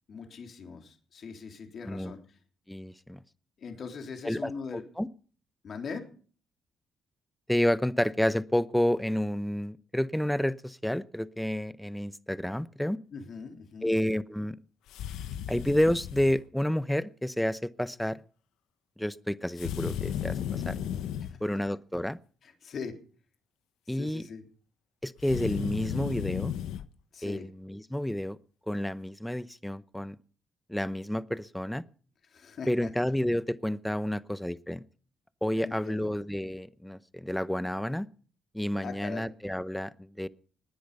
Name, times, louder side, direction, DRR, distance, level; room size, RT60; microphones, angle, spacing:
voice 1, 0.1-2.2 3.6-4.8 5.6-6.0 13.1-13.9 21.2-21.4 22.4-23.0 23.9-24.4 27.1-27.5 32.3-32.9 35.6-36.1 38.8-39.3, left 5 dB, 55° left, 4 dB, 3.5 m, -41 dB
voice 2, 2.7-3.2 4.2-5.1 7.5-13.0 13.8-14.6 15.5-18.2 19.0-20.7 21.4-22.2 23.9-24.2 25.0-26.5 27.2-28.4 28.7-30.2 30.7-31.8 32.7-34.8 35.4-38.1 38.5-40.3, left 1 dB, 5° left, 16 dB, 0.8 m, -30 dB
sound 1, 14.9-16.4 19.6-21.4 25.2-26.8, left 9 dB, 90° left, 1.0 m, -34 dB
19.0 x 10.5 x 5.5 m, 0.43 s
cardioid pair, 90°, 0 cm